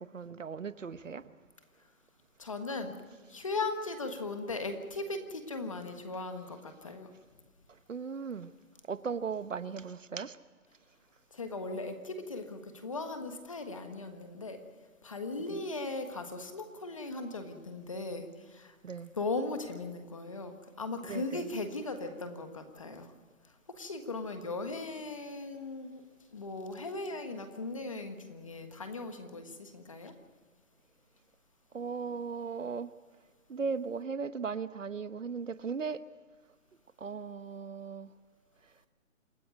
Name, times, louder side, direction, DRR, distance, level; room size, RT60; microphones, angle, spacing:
voice 1, 0.0-1.3 7.7-8.5 8.9-10.4 15.5-15.6 18.8-19.1 21.1-21.5 31.7-32.9 33.5-36.0 37.0-38.1, right 5 dB, 65° right, 14 dB, 1.0 m, -37 dB
voice 2, 2.4-3.0 3.3-7.1 11.3-14.6 15.0-18.8 19.1-23.1 23.4-26.0 26.3-30.1, left 3 dB, 25° left, 6 dB, 1.5 m, -38 dB
27.5 x 13.5 x 9.3 m, 1.5 s
hypercardioid pair, 175°, 41 cm